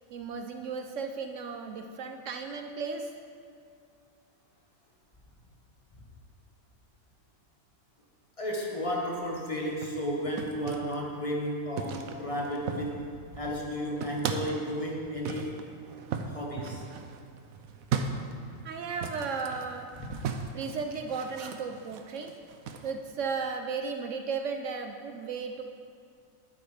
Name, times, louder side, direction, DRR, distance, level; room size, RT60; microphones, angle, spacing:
voice 1, 0.1-3.1 18.6-19.9 20.5-22.3 22.8-25.6, right 5 dB, 70° right, 5 dB, 0.9 m, -35 dB
voice 2, 8.4-15.6 16.3-16.9 20.0-20.1, equal, 25° left, -2 dB, 1.3 m, -33 dB
sound 1, 9.7-11.0 11.8-13.1 13.3-14.6 15.2-22.9, right 6 dB, 90° right, 1.1 m, -37 dB
10.5 x 8.1 x 5.0 m, 2.3 s
omnidirectional pair, 1.4 m